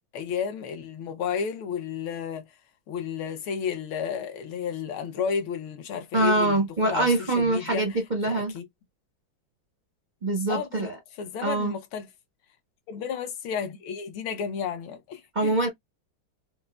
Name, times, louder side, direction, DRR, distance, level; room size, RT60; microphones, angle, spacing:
voice 1, 0.1-2.5 2.9-8.0 8.3-8.6 10.5-12.1 12.9-15.5, left 7 dB, 75° left, 1.6 m, -32 dB
voice 2, 6.1-8.5 10.2-11.0 11.4-11.7 15.3-15.7, right 2 dB, 75° right, 0.4 m, -24 dB
5.1 x 2.0 x 2.2 m
omnidirectional pair, 2.3 m